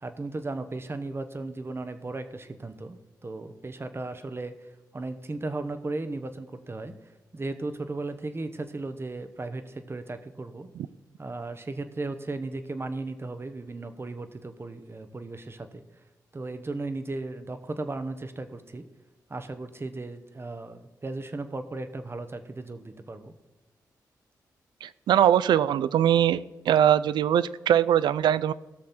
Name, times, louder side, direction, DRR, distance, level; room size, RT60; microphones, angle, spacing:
voice 1, 0.0-4.5 4.9-6.9 7.3-10.7 11.2-15.8 16.3-18.8 19.3-23.3, right 2 dB, 35° right, 9 dB, 1.2 m, -36 dB
voice 2, 24.8-26.4 26.7-28.5, right 10 dB, 85° right, 17 dB, 0.3 m, -21 dB
17.0 x 6.4 x 4.3 m, 1.1 s
cardioid pair, 55°, 7 cm